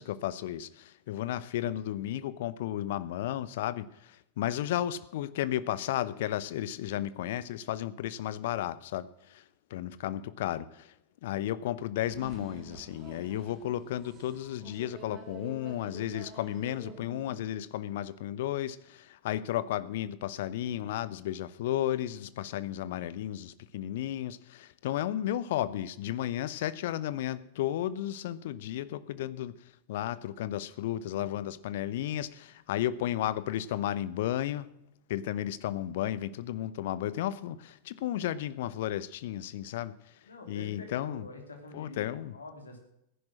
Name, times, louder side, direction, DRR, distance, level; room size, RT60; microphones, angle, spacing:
voice 1, 0.0-9.4 9.7-10.9 11.2-29.6 29.9-34.7 35.1-40.2 40.5-41.3 41.7-42.3, left 12 dB, 55° left, 17 dB, 0.8 m, -33 dB
sound 1, 12.0-17.5, right 4 dB, 25° right, 3.5 m, -49 dB
voice 2, 40.2-42.8, left 3 dB, 75° left, 4 dB, 3.1 m, -46 dB
15.0 x 11.0 x 6.3 m, 0.80 s
figure-of-eight pair, 90°, 0 cm